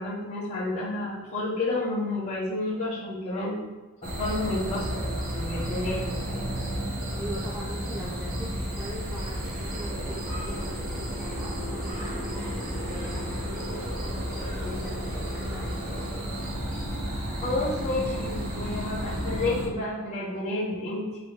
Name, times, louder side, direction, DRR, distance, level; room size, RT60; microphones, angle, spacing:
voice 1, 0.0-3.5 4.0-6.5 17.4-21.2, left 2 dB, 30° left, -9 dB, 1.0 m, -30 dB
sound 1, 4.0-19.7, equal, 40° right, 1.0 m, -32 dB
voice 2, 7.1-16.0, equal, 5° right, -6 dB, 0.4 m, -42 dB
4.4 x 3.0 x 3.3 m, 1.2 s
head